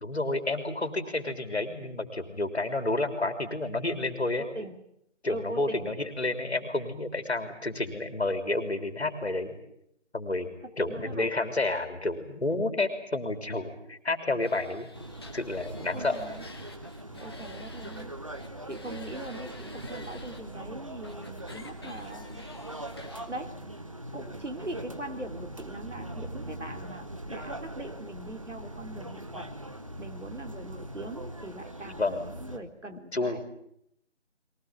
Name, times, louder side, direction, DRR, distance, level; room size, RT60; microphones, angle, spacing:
voice 1, 0.0-4.4 5.2-9.6 10.1-10.5 10.8-14.9 15.3-16.2 32.0-32.2 33.1-33.4, left 2 dB, 60° left, 8 dB, 3.6 m, -30 dB
voice 2, 4.4-4.8 5.3-5.9 10.8-11.3 15.9-16.4 17.2-18.2 18.7-22.4 23.3-23.6 24.1-29.5 30.0-33.4, right 1 dB, 75° right, 5 dB, 3.1 m, -41 dB
sound 1, 14.4-18.1 18.3-20.4 21.0-23.3, left 2 dB, 20° left, 1.8 m, -49 dB
sound 2, 14.9-32.6, right 1 dB, 25° right, 1.1 m, -41 dB
22.5 x 18.0 x 9.9 m, 0.75 s
figure-of-eight pair, 170°, 36 cm